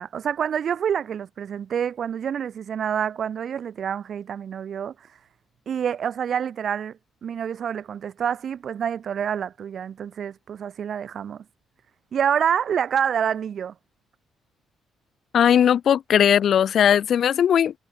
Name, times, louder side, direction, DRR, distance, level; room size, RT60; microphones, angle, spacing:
voice 1, 0.0-5.1 5.7-11.4 12.1-13.7, right 8 dB, 55° right, 3.9 m, -27 dB
voice 2, 15.3-17.7, left 9 dB, 60° left, 0.4 m, -18 dB
cardioid pair, 90°, 0 cm